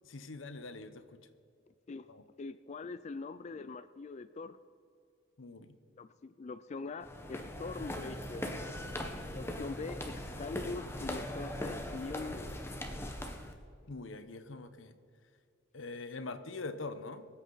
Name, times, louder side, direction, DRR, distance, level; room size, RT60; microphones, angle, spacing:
voice 1, 0.1-1.2 2.1-2.2 5.4-5.8 13.9-15.0 15.7-17.3, left 3 dB, 85° left, 11 dB, 0.9 m, -43 dB
voice 2, 2.4-4.6 6.0-8.5 9.3-12.5, left 3 dB, 35° left, 12 dB, 0.3 m, -43 dB
sound 1, 7.0-13.5, left 1 dB, 15° left, 1.0 m, -40 dB
24.0 x 8.3 x 4.0 m, 2.4 s
head